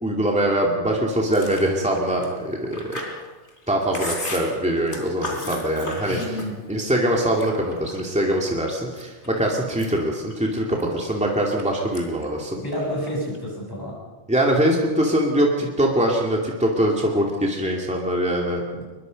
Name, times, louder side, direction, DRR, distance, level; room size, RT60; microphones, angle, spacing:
voice 1, 0.0-3.0 3.7-6.2 6.7-12.6 14.3-18.8, right 1 dB, 5° right, -1 dB, 2.5 m, -23 dB
Chewing mastication, 1.3-6.8 7.1-8.2 8.7-9.3 9.6-11.6 11.9-12.3 12.5-13.4, left 2 dB, 75° left, 3.9 m, -35 dB
voice 2, 6.1-6.6 12.6-14.0, equal, 20° left, -4 dB, 7.9 m, -29 dB
23.0 x 22.0 x 5.3 m, 1.3 s
omnidirectional pair, 1.2 m